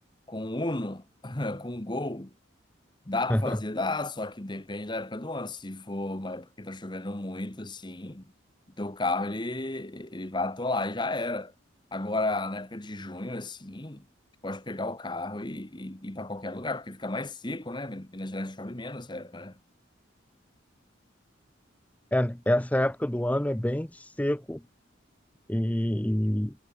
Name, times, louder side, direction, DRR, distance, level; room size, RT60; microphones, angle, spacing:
voice 1, 0.3-2.3 3.1-8.2 8.8-11.5 11.9-14.0 14.4-19.5, left 2 dB, 25° left, 1.3 m, -33 dB
voice 2, 22.1-24.6 25.5-26.5, left 1 dB, 5° left, 0.7 m, -27 dB
head